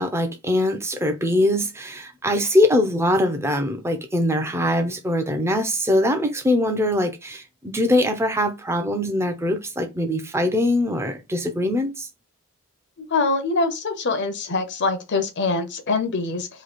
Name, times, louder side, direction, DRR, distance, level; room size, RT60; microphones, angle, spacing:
voice 1, 0.0-12.1, left 1 dB, 10° right, 0.7 m, -22 dB
voice 2, 13.0-16.5, left 3 dB, 55° left, 0.8 m, -24 dB
3.1 x 2.8 x 4.2 m
head